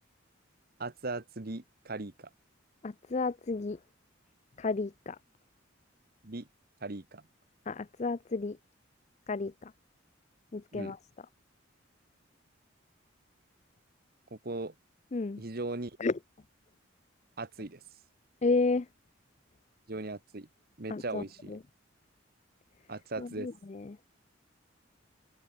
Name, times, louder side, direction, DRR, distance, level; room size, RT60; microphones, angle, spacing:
voice 1, 0.8-2.3 6.2-6.5 6.8-7.2 10.7-10.9 14.3-14.7 15.4-16.0 17.4-17.8 19.9-20.5 20.8-21.5 22.9-23.5, right 2 dB, 50° right, 1.3 m, -38 dB
voice 2, 2.8-3.8 4.6-5.2 7.7-8.6 9.3-9.7 10.5-11.0 15.1-15.4 16.0-16.2 18.4-18.9 20.9-21.6 23.2-24.0, left 3 dB, 35° left, 0.4 m, -32 dB
head